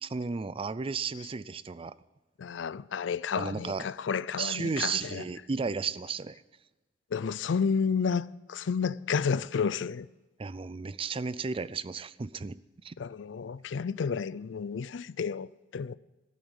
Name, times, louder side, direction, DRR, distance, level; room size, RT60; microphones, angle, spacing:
voice 1, 0.0-1.9 3.4-3.9 4.4-6.4 10.4-12.6 12.8-13.0, right 5 dB, 30° right, 0.4 m, -33 dB
voice 2, 2.4-5.2 7.1-10.1 13.0-15.9, left 6 dB, 75° left, 0.4 m, -31 dB
13.5 x 8.3 x 9.8 m
head